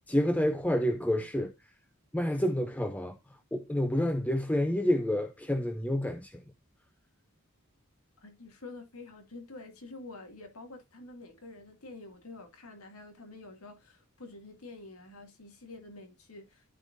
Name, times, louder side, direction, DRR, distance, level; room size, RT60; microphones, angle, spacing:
voice 1, 0.1-1.5 2.1-3.2 3.5-6.4, left 1 dB, 5° left, 0.5 m, -28 dB
voice 2, 8.2-16.7, left 2 dB, 85° left, 2.3 m, -48 dB
13.5 x 4.6 x 2.6 m
head